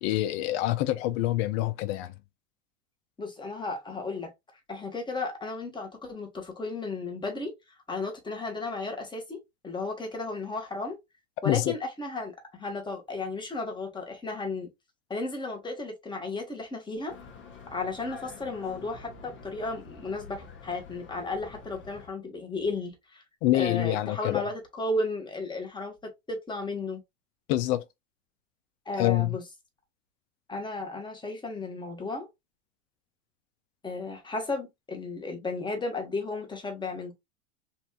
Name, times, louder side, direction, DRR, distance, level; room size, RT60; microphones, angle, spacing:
voice 1, 0.0-2.1 11.4-11.7 23.4-24.5 27.5-27.8 29.0-29.4, left 15 dB, 50° left, 0.7 m, -26 dB
voice 2, 3.2-4.3 4.7-7.5 7.9-11.0 11.4-14.7 15.1-17.2 17.7-23.2 23.5-27.0 28.8-29.4 30.5-32.3 33.8-37.1, left 3 dB, 10° left, 1.4 m, -34 dB
sound 1, 17.1-22.1, left 5 dB, 30° left, 1.1 m, -47 dB
4.1 x 2.7 x 2.4 m
hypercardioid pair, 110°, 39 cm